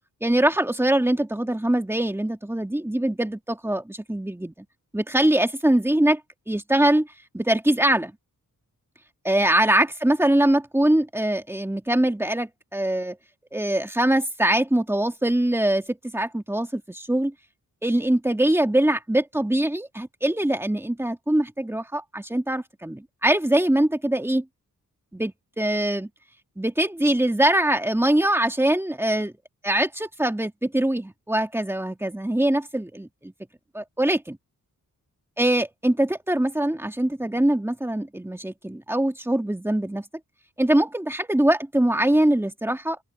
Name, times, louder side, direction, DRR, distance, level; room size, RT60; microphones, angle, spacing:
voice 1, 0.2-4.7 4.9-6.2 6.5-7.1 7.3-8.1 9.2-13.2 13.5-17.3 17.8-24.5 25.1-26.1 26.6-29.3 29.6-33.3 33.7-34.4 35.4-40.0 40.6-43.0, right 1 dB, 5° right, 2.0 m, -23 dB
open air
wide cardioid pair, 135°, 35 cm